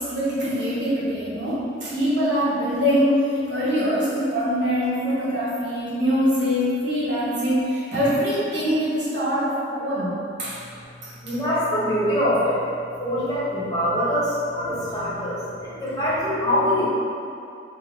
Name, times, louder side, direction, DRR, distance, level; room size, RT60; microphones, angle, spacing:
voice 1, 0.0-3.2 3.5-10.6 11.0-11.1 14.7-15.3, equal, 70° right, -9 dB, 1.0 m, -24 dB
voice 2, 11.2-12.6 13.0-16.8, equal, 20° left, -11 dB, 1.0 m, -24 dB
3.6 x 2.1 x 3.6 m, 2.5 s
head